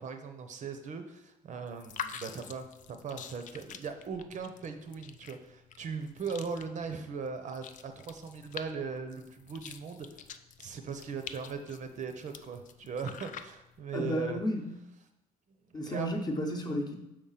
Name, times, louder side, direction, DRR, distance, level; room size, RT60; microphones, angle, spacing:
voice 1, 0.0-10.2 10.6-14.4 15.7-16.1, right 5 dB, 45° right, 7 dB, 0.6 m, -39 dB
sound 1, 1.7-13.8, left 8 dB, 50° left, 0.4 m, -47 dB
voice 2, 13.9-14.7 15.7-17.0, left 1 dB, 25° left, 1 dB, 0.9 m, -32 dB
4.8 x 3.7 x 5.7 m, 0.89 s
cardioid pair, 110°, 17 cm